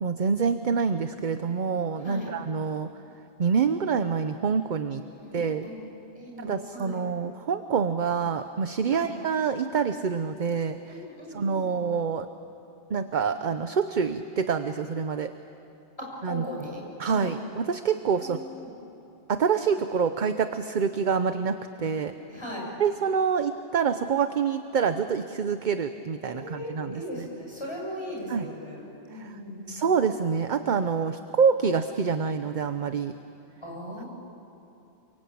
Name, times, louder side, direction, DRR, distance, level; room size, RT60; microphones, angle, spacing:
voice 1, 0.0-2.9 3.4-5.0 5.3-5.7 6.4-11.0 11.3-12.3 12.9-15.3 16.2-16.4 17.0-18.4 19.3-22.1 22.8-27.3 28.3-28.5 29.1-29.4 29.7-33.1, right 6 dB, 45° right, 9 dB, 0.8 m, -26 dB
voice 2, 5.0-5.7 6.1-7.0 8.9-9.1 10.9-11.8 16.0-17.3 18.2-18.7 22.3-22.7 26.2-29.8 33.6-34.1, left 1 dB, 25° left, -3 dB, 7.3 m, -38 dB
29.5 x 23.5 x 8.7 m, 2.8 s
omnidirectional pair, 1.2 m